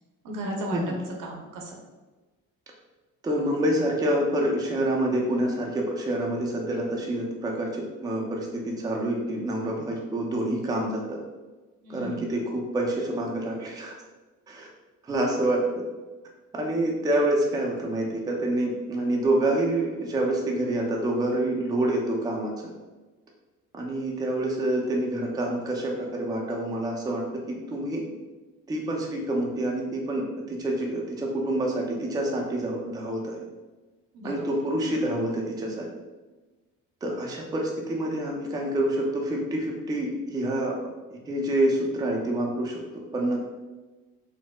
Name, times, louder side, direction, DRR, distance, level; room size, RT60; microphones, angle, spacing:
voice 1, 0.2-0.9 1.2-1.8 11.8-12.3 34.1-34.6, right 1 dB, 70° right, 0 dB, 0.8 m, -35 dB
voice 2, 3.2-11.2 11.9-13.9 14.5-14.7 15.0-15.8 16.5-22.7 23.7-28.1 28.7-33.4 34.2-35.9 37.0-40.8 41.3-43.4, right 1 dB, 10° right, -1 dB, 0.4 m, -27 dB
4.2 x 2.0 x 2.2 m, 1.2 s
cardioid pair, 110°, 33 cm